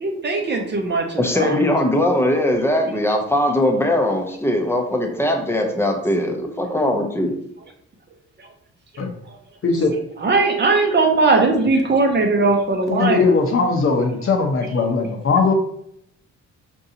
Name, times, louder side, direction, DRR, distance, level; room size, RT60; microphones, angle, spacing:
voice 1, 0.0-1.5 10.2-13.3, right 3 dB, 35° right, 3 dB, 0.7 m, -19 dB
voice 2, 1.2-7.3, left 1 dB, 10° left, 3 dB, 0.7 m, -20 dB
voice 3, 9.6-9.9 12.9-15.5, left 4 dB, 45° left, 3 dB, 0.8 m, -19 dB
4.6 x 2.6 x 2.7 m, 0.69 s
cardioid pair, 90°, 30 cm